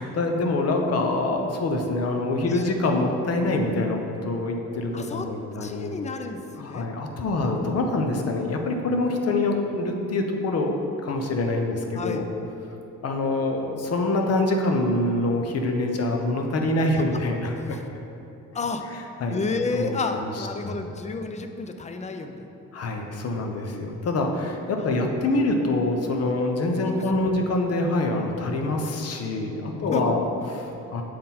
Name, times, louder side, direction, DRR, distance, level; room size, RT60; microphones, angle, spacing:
voice 1, 0.0-5.9 6.6-12.3 13.0-17.8 19.2-19.4 19.7-20.8 22.7-31.0, left 2 dB, 55° left, 3 dB, 0.8 m, -25 dB
voice 2, 4.9-5.3 5.6-6.9 11.9-12.2 17.7-17.8 18.5-18.8 19.3-22.5 26.9-27.3 29.7-30.3, left 3 dB, 25° left, 6 dB, 0.5 m, -31 dB
7.6 x 3.7 x 4.3 m, 2.9 s
cardioid pair, 90°, 30 cm